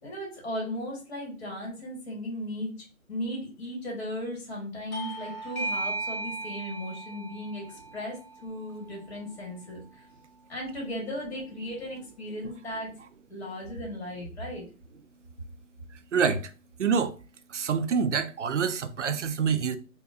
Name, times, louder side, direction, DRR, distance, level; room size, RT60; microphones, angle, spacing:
voice 1, 0.0-2.7 3.1-10.0 10.5-12.9 13.3-14.7, left 1 dB, 50° left, 1.7 m, -36 dB
Bell / Doorbell, 4.9-10.0, right 2 dB, 80° left, 0.9 m, -37 dB
voice 2, 15.9-16.5 16.8-17.2 17.5-19.8, right 6 dB, 60° right, 0.5 m, -26 dB
3.7 x 2.2 x 2.6 m
figure-of-eight pair, 145°, 42 cm